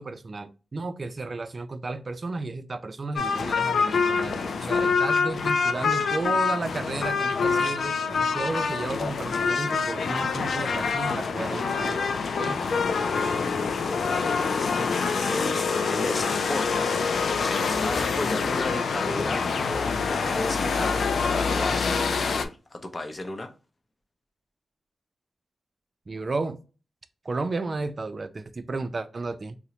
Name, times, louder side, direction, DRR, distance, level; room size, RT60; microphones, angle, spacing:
voice 1, 0.0-12.0 12.4-12.6 26.1-26.6 27.2-29.5, right 3 dB, 50° right, 0.3 m, -33 dB
sound 1, 3.1-22.5, left 5 dB, 75° left, 0.3 m, -26 dB
voice 2, 11.5-12.2 12.7-16.9 17.2-23.5, left 2 dB, 35° left, 0.6 m, -35 dB
3.7 x 2.0 x 2.8 m
cardioid pair, 50°, 0 cm